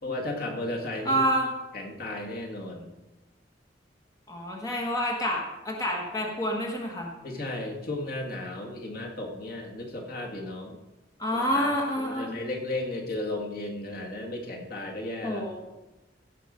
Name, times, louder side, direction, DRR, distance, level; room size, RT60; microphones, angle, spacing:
voice 1, 0.0-1.2 1.7-2.9 7.2-10.8 11.5-15.5, left 2 dB, 55° left, 0 dB, 1.9 m, -34 dB
voice 2, 1.0-1.5 4.3-7.1 11.2-12.4 15.2-15.5, equal, 20° left, 0 dB, 1.4 m, -28 dB
16.0 x 6.0 x 5.2 m, 1.0 s
head